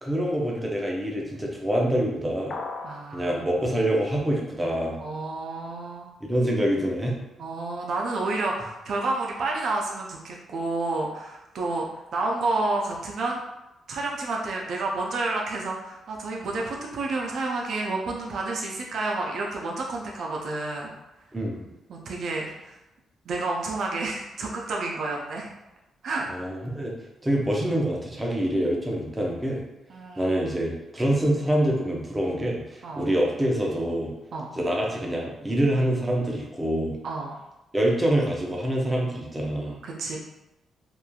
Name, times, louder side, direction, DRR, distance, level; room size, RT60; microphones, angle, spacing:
voice 1, 0.0-2.6 3.1-5.0 6.2-7.2 21.3-21.7 26.3-27.0 27.2-29.6 30.2-34.1 34.5-37.0 37.7-39.8, right 1 dB, 15° right, -2 dB, 0.6 m, -25 dB
sound 1, 2.5-3.1, left 3 dB, 60° left, 0.3 m, -35 dB
voice 2, 2.8-3.5 5.0-6.1 7.4-13.4 13.9-20.9 21.9-22.8 23.3-25.5 26.0-26.3 29.9-30.4 32.8-33.1 34.3-34.5 37.0-37.4 39.8-40.2, right 2 dB, 65° right, -1 dB, 0.4 m, -30 dB
2.9 x 2.3 x 2.2 m, 0.94 s
cardioid pair, 100°, 0 cm